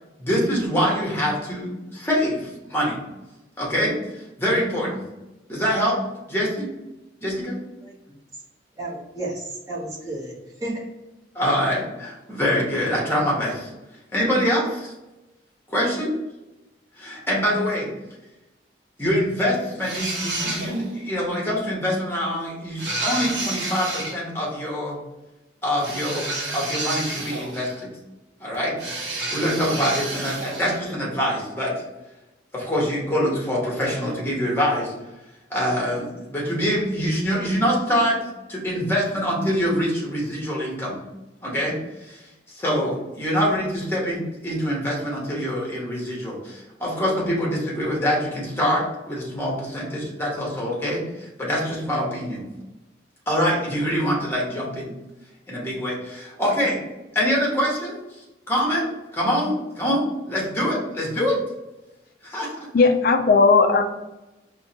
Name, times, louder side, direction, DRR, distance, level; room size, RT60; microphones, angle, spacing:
voice 1, 0.2-3.0 3.6-3.9 4.4-5.1 5.5-6.0 6.3-6.7 7.2-7.6 11.3-13.7 14.1-14.9 15.7-16.1 17.0-17.9 19.0-25.0 25.6-27.9 28.4-28.7 29.3-31.7 32.5-34.9 35.5-38.2 38.5-41.0 41.4-52.5 53.3-54.9 55.5-56.8 57.1-58.0 58.5-58.9 59.1-61.4 62.2-62.7, equal, 10° left, -4 dB, 1.0 m, -24 dB
voice 2, 8.8-10.3 10.6-10.9, right 1 dB, 15° right, -6 dB, 0.9 m, -32 dB
sound 1, 19.8-21.0 22.8-24.2 25.8-27.8 28.8-30.8, right 2 dB, 75° right, 1.0 m, -30 dB
voice 3, 62.7-63.8, left 4 dB, 50° left, 5 dB, 0.3 m, -16 dB
4.6 x 2.2 x 2.8 m, 1.0 s
head